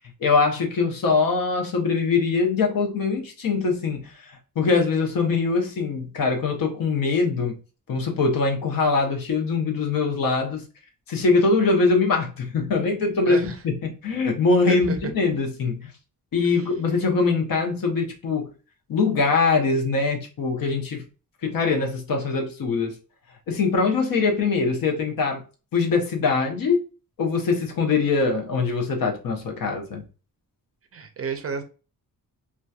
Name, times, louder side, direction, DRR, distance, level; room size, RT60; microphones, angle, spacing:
voice 1, 0.2-7.6 7.9-10.7 11.1-15.9 16.3-18.5 18.9-21.0 21.4-23.0 23.5-25.4 25.7-26.8 27.2-30.0, left 4 dB, 70° left, 0.8 m, -23 dB
voice 2, 13.2-13.6 14.7-15.0 16.4-16.7 30.9-31.6, right 6 dB, 40° right, 0.4 m, -31 dB
2.7 x 2.2 x 2.2 m
wide cardioid pair, 125°, 36 cm